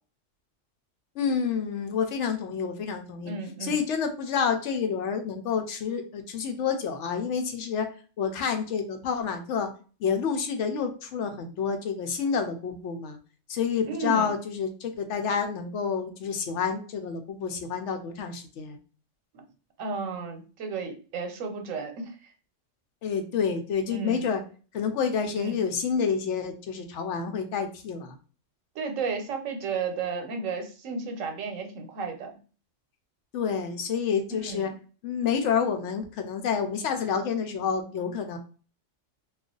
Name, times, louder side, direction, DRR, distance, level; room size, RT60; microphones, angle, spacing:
voice 1, 1.2-3.3 3.6-7.9 8.2-9.7 10.0-13.2 13.5-18.8 23.0-24.4 24.7-28.1 33.3-34.7 35.0-38.4, left 6 dB, 70° left, 6 dB, 0.9 m, -28 dB
voice 2, 3.2-3.8 13.9-14.3 19.3-19.4 19.8-22.1 23.9-24.2 25.4-25.6 28.8-32.4 34.5-34.6, right 5 dB, 85° right, 5 dB, 1.1 m, -33 dB
2.4 x 2.3 x 3.7 m, 0.38 s
omnidirectional pair, 1.3 m